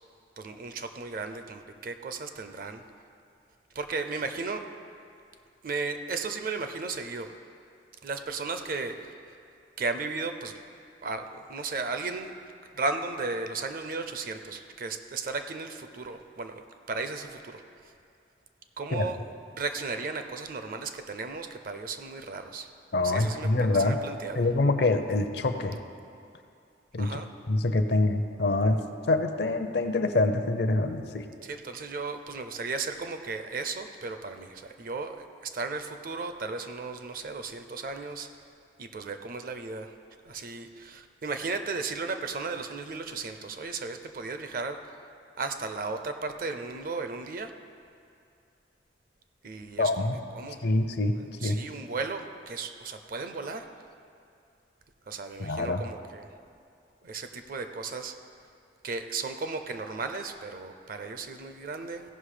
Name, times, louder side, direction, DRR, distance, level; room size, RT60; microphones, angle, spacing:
voice 1, 0.4-2.8 3.7-4.6 5.6-7.3 8.0-9.1 9.8-10.6 11.0-12.3 12.7-16.6 16.9-17.6 18.8-22.7 23.0-24.4 27.0-27.3 31.4-38.3 38.8-39.9 40.2-44.8 45.4-47.5 49.4-50.1 50.3-50.6 51.4-53.7 55.1-56.3 57.0-58.2 58.8-62.0, right 4 dB, 50° right, 8 dB, 0.6 m, -35 dB
voice 2, 22.9-24.0 24.4-25.8 26.9-27.2 27.5-28.8 29.1-31.3 49.8-50.2 50.6-51.6 55.4-55.8, left 2 dB, 65° left, 8 dB, 0.6 m, -25 dB
15.5 x 5.6 x 5.0 m, 2.4 s
head